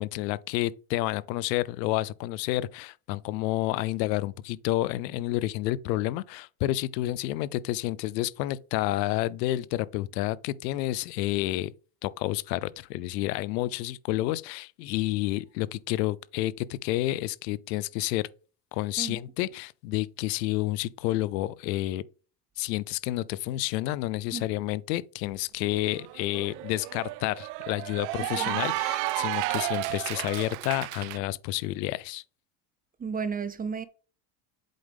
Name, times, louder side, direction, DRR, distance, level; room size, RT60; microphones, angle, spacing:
voice 1, 0.0-11.7 12.0-18.3 18.7-22.0 22.6-32.2, left 16 dB, 85° left, 0.6 m, -30 dB
Cheering / Applause, 25.3-25.4 25.7-31.2, right 19 dB, 75° right, 0.6 m, -32 dB
voice 2, 33.0-33.9, right 5 dB, 20° right, 0.5 m, -33 dB
7.7 x 5.0 x 3.5 m
supercardioid pair, 100°, 49 cm